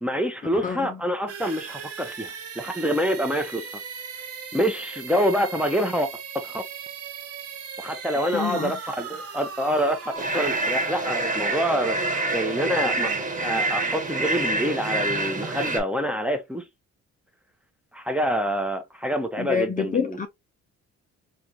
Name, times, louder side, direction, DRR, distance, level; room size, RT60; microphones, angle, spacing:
voice 1, 0.0-3.7 4.5-6.1 6.4-6.6 7.8-12.0 12.3-13.1 13.4-16.6 17.9-20.3, equal, 5° right, 0.7 m, -26 dB
voice 2, 0.5-1.0 8.3-8.8 19.4-20.3, left 6 dB, 30° left, 0.5 m, -27 dB
sound 1, 1.3-15.0, right 6 dB, 50° right, 0.7 m, -39 dB
sound 2, 10.2-15.8, right 2 dB, 25° right, 1.3 m, -27 dB
3.4 x 2.5 x 2.7 m
cardioid pair, 90°, 30 cm